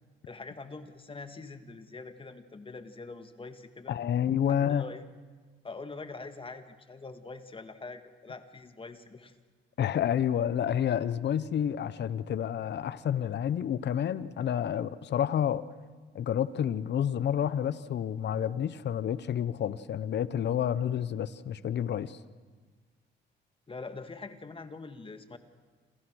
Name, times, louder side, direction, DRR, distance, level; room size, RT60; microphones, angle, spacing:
voice 1, 0.3-4.0 4.5-5.0 5.6-9.3 23.7-25.4, left 3 dB, 25° left, 8 dB, 2.0 m, -44 dB
voice 2, 3.9-4.8 9.8-15.6 16.1-22.2, left 9 dB, 60° left, 15 dB, 1.0 m, -29 dB
28.5 x 27.5 x 6.4 m, 1.4 s
cardioid pair, 90°, 20 cm